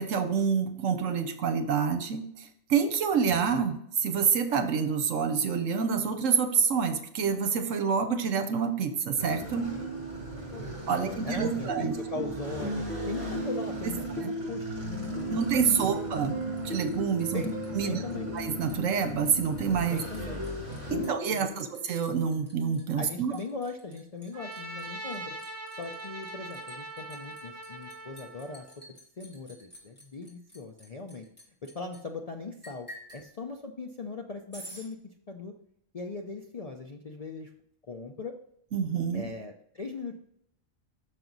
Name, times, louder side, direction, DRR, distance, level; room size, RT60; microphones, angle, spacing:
voice 1, 0.0-2.3 2.7-9.7 10.9-11.9 13.8-14.3 15.3-16.3 16.6-17.4 17.7-20.0 20.9-23.3 38.7-39.3, right 6 dB, 75° right, 9 dB, 1.2 m, -27 dB
sound 1, 9.2-21.1, right 1 dB, 25° right, 1.8 m, -35 dB
voice 2, 10.5-15.4 15.8-16.5 17.3-18.3 19.9-20.4 20.9-21.7 23.0-25.4 25.8-31.3 31.6-35.5 35.9-37.5 37.9-38.4 39.1-40.2, left 3 dB, 50° left, 2 dB, 0.4 m, -40 dB
Liquid, 15.0-16.9 17.2-17.8 18.1-32.0 32.6-33.2 34.5-34.9, equal, 10° left, 1.8 m, -51 dB
Trumpet, 24.3-28.8, right 2 dB, 55° right, 1.3 m, -41 dB
6.1 x 5.9 x 3.9 m, 0.72 s
omnidirectional pair, 1.4 m